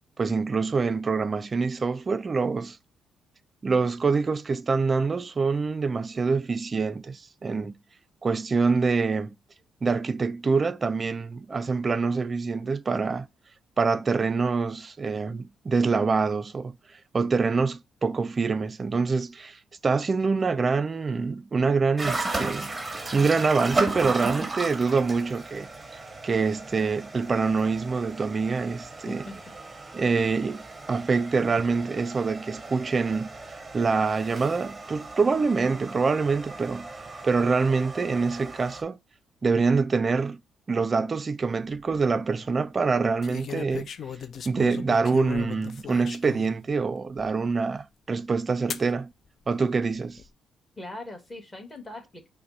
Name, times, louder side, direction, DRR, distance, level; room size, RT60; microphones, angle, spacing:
voice 1, 0.2-2.8 3.6-7.7 8.2-9.3 9.8-13.3 13.8-16.8 17.1-22.7 23.1-25.7 26.2-29.2 29.9-30.6 30.9-33.3 33.7-36.9 37.2-39.0 39.4-40.4 40.7-43.9 44.5-49.1 49.5-50.2, right 4 dB, 35° right, 0.4 m, -25 dB
sound 1, 22.0-38.8, right 3 dB, 20° right, 0.8 m, -36 dB
voice 2, 29.0-29.5 50.8-52.3, left 2 dB, 15° left, 1.7 m, -41 dB
sound 2, 41.5-42.0 43.2-46.6 47.2-47.3 48.7-48.9 49.8-50.3, left 8 dB, 55° left, 0.4 m, -37 dB
5.7 x 2.1 x 4.0 m
cardioid pair, 90°, 0 cm